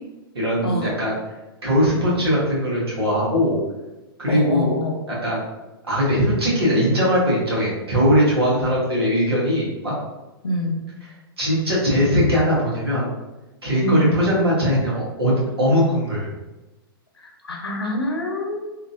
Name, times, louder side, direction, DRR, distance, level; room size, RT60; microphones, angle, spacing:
voice 1, 0.3-1.2 1.6-3.6 4.2-4.7 5.1-5.4 5.8-9.9 11.4-13.1 13.6-16.3, equal, 90° right, -6 dB, 1.3 m, -20 dB
voice 2, 4.3-5.0 10.4-10.7 13.8-14.1 17.2-18.8, left 1 dB, 90° left, 1 dB, 0.7 m, -25 dB
3.0 x 2.5 x 2.5 m, 1.1 s
hypercardioid pair, 115°, 13 cm